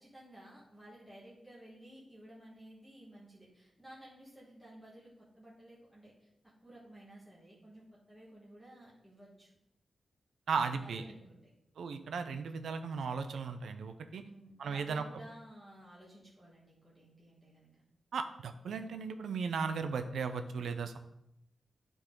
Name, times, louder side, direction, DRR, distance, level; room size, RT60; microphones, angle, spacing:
voice 1, 0.0-6.3 6.6-9.5 10.6-11.5 14.2-17.8, right 1 dB, ahead, -7 dB, 1.5 m, -54 dB
voice 2, 10.5-11.0 11.8-14.2 14.6-15.0 18.1-21.0, right 5 dB, 90° right, 8 dB, 0.6 m, -36 dB
11.5 x 3.9 x 3.8 m, 0.81 s
wide cardioid pair, 175°, 0 cm